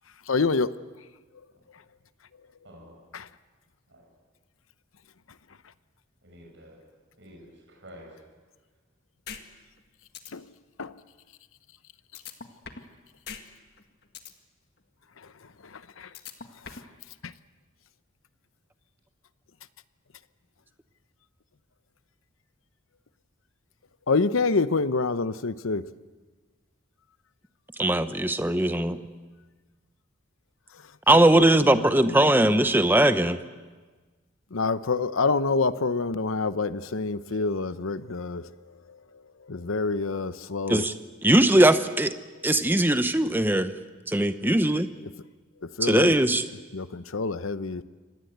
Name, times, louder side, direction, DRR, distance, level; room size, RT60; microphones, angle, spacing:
voice 1, 0.3-0.7 3.1-3.3 10.3-10.4 10.8-10.9 15.7-16.1 16.7-16.8 17.2-17.3 24.1-25.8 31.1-32.7 34.5-38.5 39.5-40.8 45.8-46.2 46.7-47.8, left 4 dB, 85° left, 0.8 m, -27 dB
voice 2, 2.6-3.0 3.9-4.0 6.2-6.8 7.2-8.2 37.2-37.4, equal, 60° right, 6.8 m, -49 dB
sound 1, 9.3-9.4 9.8-9.9 10.1-10.3 12.1-12.9 13.3-13.4 13.8-14.3 16.1-16.9, left 6 dB, 50° left, 1.7 m, -40 dB
voice 3, 27.8-29.0 31.1-33.4 40.7-40.9 41.2-42.1 42.4-43.7 44.1-44.9 45.8-46.4, right 1 dB, 10° right, 0.8 m, -20 dB
26.0 x 18.5 x 8.1 m
head